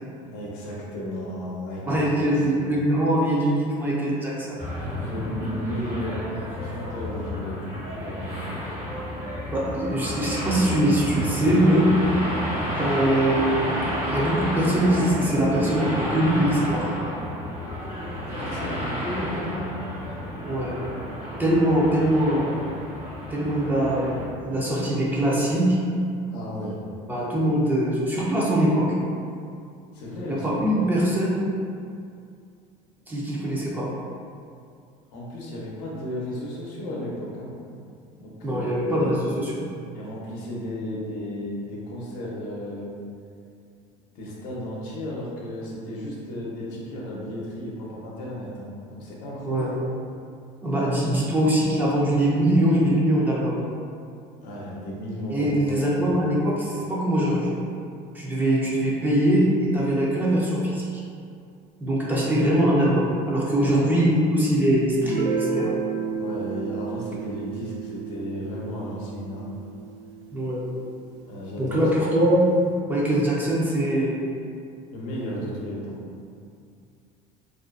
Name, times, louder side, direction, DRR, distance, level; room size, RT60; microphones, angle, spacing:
voice 1, 0.2-2.8 5.0-6.2 6.6-8.3 18.2-19.8 26.3-26.8 29.9-30.9 35.1-37.5 38.1-38.9 39.9-43.0 44.1-49.7 54.4-56.1 63.6-63.9 66.2-69.5 71.3-72.0 74.9-76.0, left 1 dB, 75° left, -4 dB, 0.6 m, -34 dB
voice 2, 1.9-4.6 9.5-11.9 12.8-13.5 14.0-16.9 20.5-20.8 21.4-22.5 23.3-24.1 24.4-25.8 27.1-28.9 30.3-31.4 33.1-33.9 38.4-39.7 49.4-49.7 50.6-53.7 55.3-57.5 58.1-61.0 61.8-65.7 70.3-70.6 71.6-72.5 72.9-74.2, right 1 dB, 10° right, -6 dB, 0.4 m, -22 dB
sound 1, 4.6-24.3, equal, 55° right, 0.7 m, -31 dB
Guitar, 65.0-70.5, right 6 dB, 85° right, 0.4 m, -32 dB
2.4 x 2.2 x 2.3 m, 2.4 s
cardioid pair, 145°, 15 cm